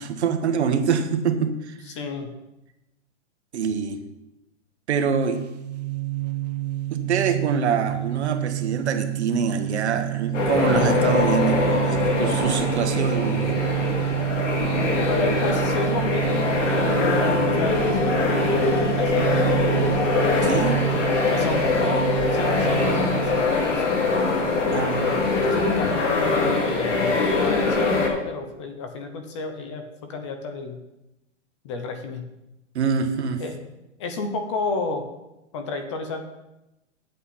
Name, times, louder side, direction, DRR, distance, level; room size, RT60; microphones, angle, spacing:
voice 1, 0.0-1.7 3.5-4.0 4.9-5.4 6.9-13.6 20.4-20.8 24.7-25.3 32.7-33.4, right 6 dB, 65° right, 7 dB, 1.2 m, -25 dB
voice 2, 1.9-2.3 15.1-19.8 20.9-22.0 22.3-24.1 25.6-26.4 26.6-30.8 31.6-32.2 33.4-33.6 34.0-35.1 35.5-36.2, left 3 dB, 25° left, 6 dB, 0.7 m, -31 dB
sound 1, 5.2-23.5, right 16 dB, 35° right, 0.5 m, -28 dB
sound 2, 10.3-28.1, left 4 dB, 80° left, 2.6 m, -23 dB
9.4 x 8.4 x 4.2 m, 0.93 s
hypercardioid pair, 165°, 36 cm